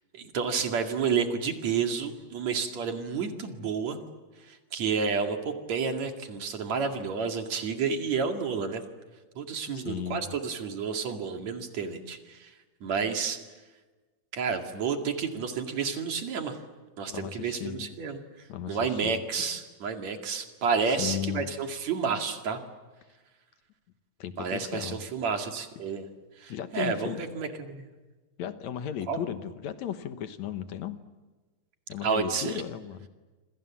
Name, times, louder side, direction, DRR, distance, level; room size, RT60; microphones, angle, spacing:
voice 1, 0.1-4.0 4.5-8.8 9.4-12.5 12.8-13.4 14.3-16.6 17.0-22.6 24.4-26.1 26.4-27.9 29.1-29.2 32.0-32.6, right 5 dB, 65° right, 4 dB, 3.5 m, -30 dB
voice 2, 9.7-10.3 17.1-17.9 18.5-19.2 20.9-21.5 24.2-25.0 26.5-27.2 28.4-31.0 31.9-33.1, left 9 dB, 70° left, 10 dB, 2.5 m, -35 dB
28.0 x 26.0 x 7.4 m, 1.2 s
omnidirectional pair, 3.4 m